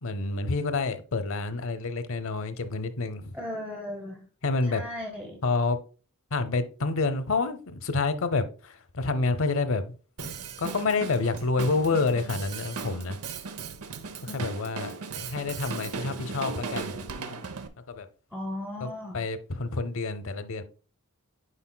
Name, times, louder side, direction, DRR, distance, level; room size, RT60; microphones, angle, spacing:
voice 1, 0.0-3.4 4.4-4.8 5.4-5.8 6.3-13.2 14.3-17.0 17.9-18.1 18.8-20.6, left 3 dB, 65° left, 0.7 m, -28 dB
voice 2, 3.3-4.3 4.7-5.4 14.3-14.4 18.3-19.2, left 1 dB, 5° right, 0.8 m, -36 dB
Drum kit, 10.2-17.7, right 5 dB, 80° right, 0.7 m, -37 dB
9.8 x 5.0 x 2.2 m
head